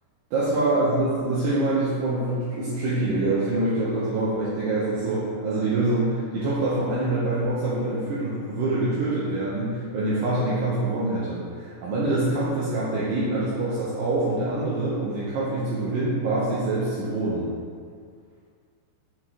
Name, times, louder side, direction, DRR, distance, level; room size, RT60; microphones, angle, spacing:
voice 1, 0.3-17.5, right 2 dB, 75° right, -8 dB, 2.2 m, -25 dB
6.5 x 6.4 x 3.8 m, 2.1 s
omnidirectional pair, 5.2 m